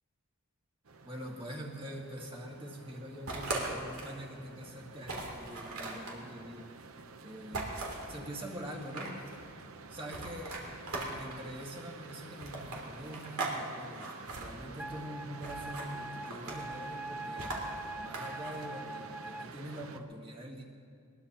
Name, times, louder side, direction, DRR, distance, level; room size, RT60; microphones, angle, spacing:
sound 1, 0.8-20.0, right 4 dB, 70° right, 0.8 m, -50 dB
voice 1, 1.0-6.7 7.2-9.1 9.9-14.1 14.4-17.6 18.0-20.6, equal, 25° right, -1 dB, 1.9 m, -44 dB
sound 2, 3.3-4.2 4.6-4.7 5.0-6.2 7.5-8.1 8.7-9.4 10.1-11.4 12.4-13.6 13.9-14.5 15.4-15.9 16.2-16.8 17.4-18.6, right 2 dB, 85° right, 2.9 m, -39 dB
Wind instrument woodwind instrument, 14.8-19.5, right 2 dB, 5° right, 0.4 m, -43 dB
21.5 x 20.0 x 2.9 m, 2.3 s
head